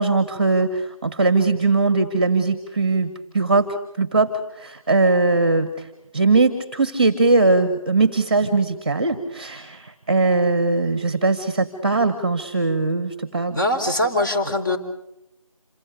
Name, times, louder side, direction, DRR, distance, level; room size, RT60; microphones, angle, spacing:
voice 1, 0.0-3.7 4.0-5.9 6.1-13.6, right 3 dB, 15° right, 11 dB, 1.4 m, -20 dB
voice 2, 13.5-14.8, left 1 dB, 35° left, 3 dB, 4.2 m, -22 dB
27.5 x 24.5 x 6.5 m, 0.83 s
figure-of-eight pair, 170°, 18 cm